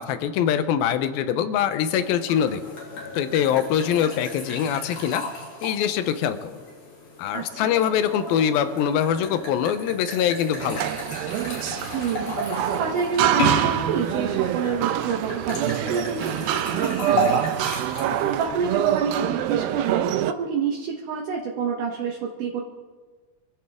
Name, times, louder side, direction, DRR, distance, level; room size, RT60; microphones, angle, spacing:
voice 1, 0.0-2.6 3.1-5.2 5.6-6.6 7.2-10.9, left 9 dB, 75° left, 11 dB, 2.5 m, -23 dB
sound 1, 2.0-18.4, left 3 dB, 40° left, 3.0 m, -34 dB
voice 2, 7.3-7.7 11.9-22.6, right 6 dB, 65° right, -1 dB, 2.6 m, -28 dB
sound 2, 10.6-20.3, right 11 dB, 80° right, 2.3 m, -25 dB
26.5 x 14.5 x 3.6 m, 1.4 s
omnidirectional pair, 4.6 m